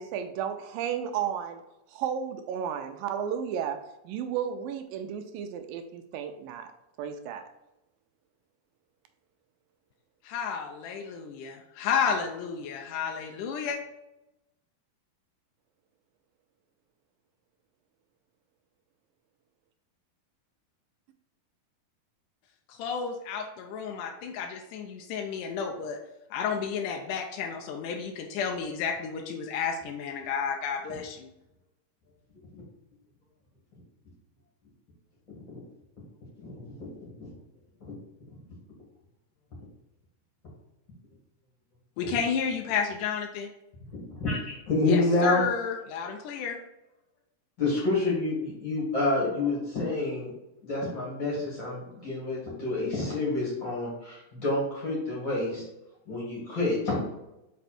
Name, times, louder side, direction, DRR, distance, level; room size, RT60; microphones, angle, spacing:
voice 1, 0.0-1.6 1.9-3.8 4.1-6.7 7.0-7.4, right 8 dB, 80° right, 7 dB, 2.2 m, -33 dB
voice 2, 10.2-13.8 22.7-26.0 26.3-31.3 42.0-43.5 44.9-46.6, left 6 dB, 75° left, 2 dB, 2.0 m, -31 dB
voice 3, 36.4-37.3 37.8-37.9 42.0-42.2 43.9-45.4 47.6-50.3 50.6-55.6 56.1-57.0, left 2 dB, 40° left, -5 dB, 2.3 m, -28 dB
5.9 x 5.3 x 4.3 m, 0.92 s
omnidirectional pair, 4.1 m